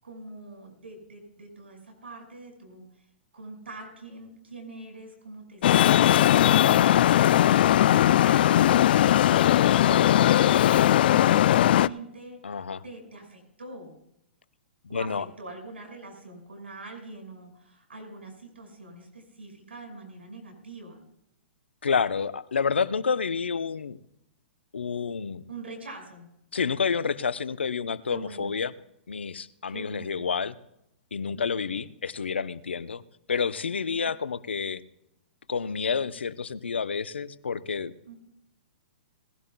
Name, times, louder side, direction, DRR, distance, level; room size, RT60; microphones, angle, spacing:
voice 1, 0.0-2.8 3.3-7.5 8.1-12.4 12.8-14.0 14.9-21.0 25.5-26.3 28.1-28.6 29.7-30.3 31.3-31.8 33.8-34.1 38.0-38.1, right 2 dB, 85° right, 3 dB, 5.5 m, -44 dB
Traffic noise roadway noise, 5.6-11.9, left 12 dB, 60° left, 0.4 m, -19 dB
voice 2, 5.8-6.2 12.4-12.8 14.9-15.3 21.8-24.0 24.7-25.5 26.5-28.7 29.1-30.6 31.1-33.0 33.3-34.8 35.5-37.9, left 6 dB, 85° left, 15 dB, 0.7 m, -29 dB
19.5 x 16.0 x 2.3 m, 0.80 s
hypercardioid pair, 120°, 6 cm